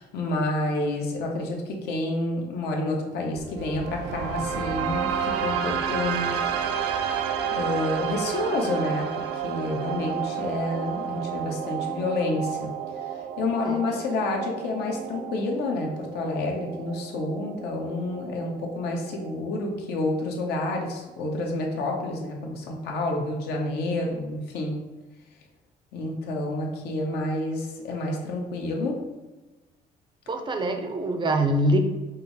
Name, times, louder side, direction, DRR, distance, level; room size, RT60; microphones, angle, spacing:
voice 1, 0.0-6.3 7.5-9.1 9.3-12.7 13.0-24.8 25.9-29.0, left 2 dB, 75° left, 1 dB, 0.9 m, -29 dB
sound 1, 3.4-19.4, right 7 dB, 85° right, 0.4 m, -31 dB
voice 2, 30.3-31.8, right 1 dB, 30° right, 6 dB, 0.5 m, -24 dB
5.4 x 2.0 x 3.9 m, 1.1 s
cardioid pair, 110°, 17 cm